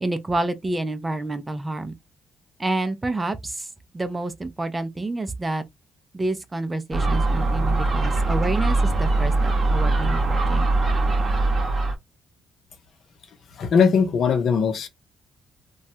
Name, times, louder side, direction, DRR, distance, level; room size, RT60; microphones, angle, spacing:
voice 1, 0.0-1.9 2.6-3.7 3.9-5.6 6.1-10.7, right 2 dB, 20° right, 0.5 m, -28 dB
Gull seagull, 6.9-11.9, right 2 dB, 40° right, 0.8 m, -21 dB
voice 2, 13.6-14.9, left 6 dB, 65° left, 0.7 m, -20 dB
3.0 x 2.3 x 2.7 m
cardioid pair, 90°, 0 cm